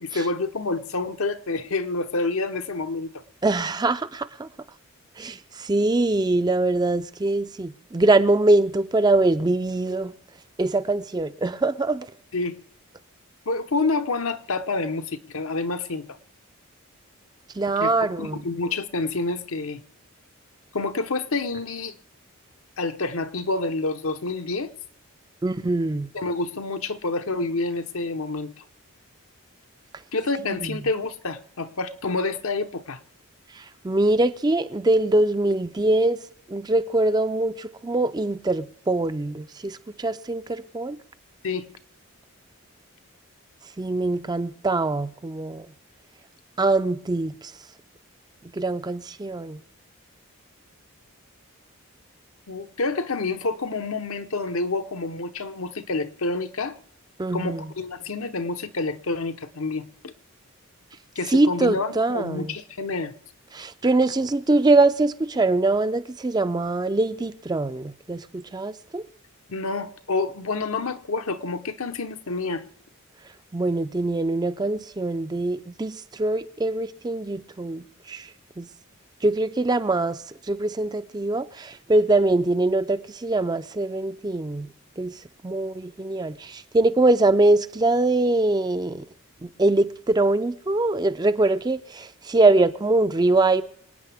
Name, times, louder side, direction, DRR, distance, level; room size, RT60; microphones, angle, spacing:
voice 1, 0.0-3.1 12.3-12.6 13.5-16.2 17.8-19.8 20.7-22.0 22.8-24.7 26.1-28.5 30.1-33.0 41.4-41.7 52.5-56.8 57.3-60.1 61.2-63.1 69.5-72.6, left 3 dB, 75° left, 0.9 m, -28 dB
voice 2, 3.4-4.5 5.2-10.1 10.6-12.1 17.6-18.4 25.4-26.1 30.5-30.6 33.6-36.2 36.5-41.0 43.8-45.7 46.6-47.3 48.5-49.6 57.2-57.6 61.3-62.5 63.5-69.0 73.5-78.3 78.6-78.7 79.2-80.2 80.5-85.1 85.4-89.1 89.4-93.6, right 2 dB, 20° right, 0.4 m, -23 dB
27.0 x 9.2 x 3.5 m
head